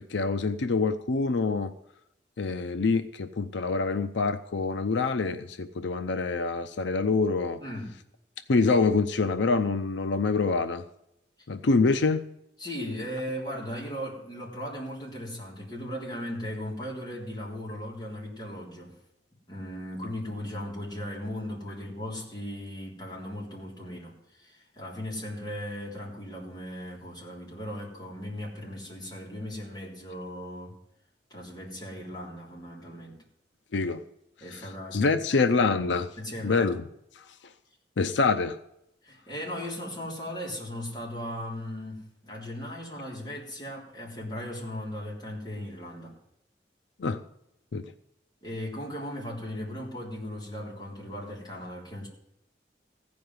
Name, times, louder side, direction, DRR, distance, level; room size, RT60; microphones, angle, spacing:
voice 1, 0.0-1.7 2.4-7.6 8.5-10.8 11.5-12.2 33.7-34.0 34.5-34.6 34.9-36.1 36.4-36.8 38.0-38.6 47.0-47.2 47.7-47.8, left 4 dB, 85° left, 10 dB, 0.6 m, -25 dB
voice 2, 7.6-7.9 12.6-18.9 19.5-30.8 31.3-33.2 34.4-35.4 36.2-36.7 39.0-46.1 48.4-52.1, equal, 25° left, -4 dB, 3.5 m, -37 dB
15.5 x 5.2 x 9.5 m, 0.79 s
head